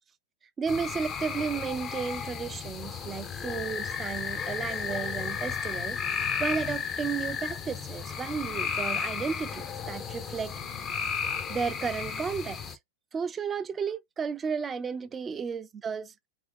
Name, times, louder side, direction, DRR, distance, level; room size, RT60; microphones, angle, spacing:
voice 1, 0.6-10.6 11.5-12.8 13.1-16.1, right 6 dB, 20° right, 0.4 m, -33 dB
sound 1, 0.7-12.7, left 6 dB, 30° left, 0.5 m, -34 dB
2.9 x 2.6 x 3.4 m
hypercardioid pair, 105°, 0 cm